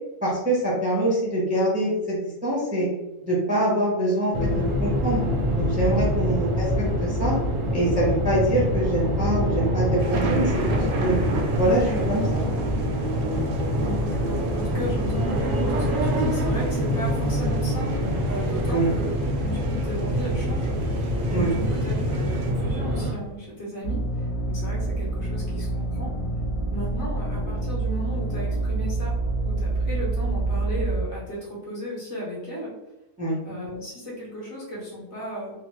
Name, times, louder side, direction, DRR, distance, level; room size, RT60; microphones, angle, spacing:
voice 1, 0.2-2.9 3.2-5.2 5.5-6.7 7.0-7.3 7.7-11.2 11.6-12.5 18.7-18.9 21.3-21.5 33.2-33.4, right 1 dB, 10° right, -6 dB, 0.5 m, -24 dB
sound 1, 4.3-23.1, equal, 55° right, 0.6 m, -25 dB
sound 2, 10.0-22.5, right 2 dB, 90° right, 1.0 m, -36 dB
voice 2, 13.7-26.1 26.7-29.2 29.4-32.7 33.4-35.5, equal, 55° left, -5 dB, 1.4 m, -35 dB
sound 3, 23.8-31.0, right 2 dB, 85° left, 1.1 m, -27 dB
3.1 x 2.0 x 3.0 m, 0.98 s
omnidirectional pair, 1.4 m